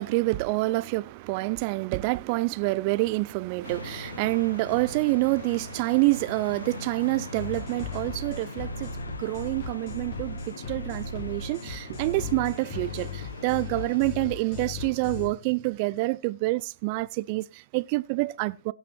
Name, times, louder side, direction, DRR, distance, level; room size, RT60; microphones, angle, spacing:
voice 1, 0.0-8.9 9.2-18.7, right 22 dB, 35° right, 0.5 m, -27 dB
sound 1, 3.6-14.0, left 3 dB, 75° left, 1.9 m, -42 dB
sound 2, 7.3-15.3, left 4 dB, 35° left, 5.1 m, -37 dB
17.0 x 5.9 x 4.5 m
figure-of-eight pair, 125°, 0 cm